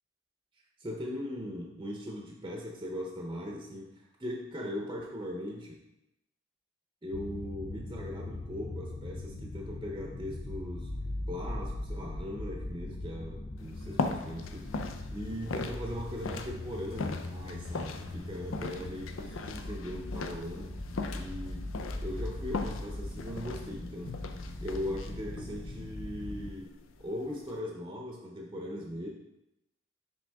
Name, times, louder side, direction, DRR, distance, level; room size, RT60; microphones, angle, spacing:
voice 1, 0.8-5.8 7.0-10.9 11.3-20.7 21.1-21.7 22.0-24.2 24.6-29.1, left 1 dB, 20° right, -1 dB, 0.7 m, -39 dB
sound 1, 7.1-26.5, left 1 dB, 30° left, 0.4 m, -40 dB
sound 2, 13.6-27.6, left 3 dB, 90° left, 0.5 m, -40 dB
6.1 x 4.9 x 3.5 m, 0.88 s
head